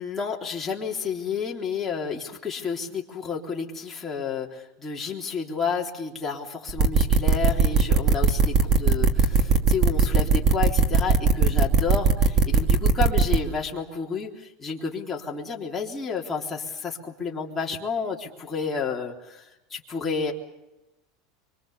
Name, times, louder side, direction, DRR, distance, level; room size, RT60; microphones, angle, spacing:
voice 1, 0.0-20.3, left 5 dB, 10° left, -2 dB, 3.6 m, -31 dB
sound 1, 6.7-13.4, right 5 dB, 25° right, 2.4 m, -18 dB
25.0 x 25.0 x 7.1 m, 0.94 s
supercardioid pair, 155°, 2 cm